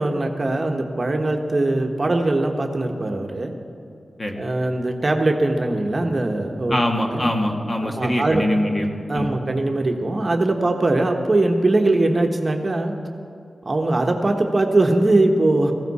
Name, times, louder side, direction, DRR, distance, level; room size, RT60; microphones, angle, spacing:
voice 1, 0.0-3.5 4.4-7.3 7.8-8.4 9.1-12.9 13.6-15.7, right 2 dB, 40° right, 3 dB, 1.2 m, -21 dB
voice 2, 6.7-9.3, left 1 dB, 30° left, 2 dB, 1.7 m, -23 dB
17.0 x 15.5 x 4.2 m, 2.6 s
wide cardioid pair, 85°, 0 cm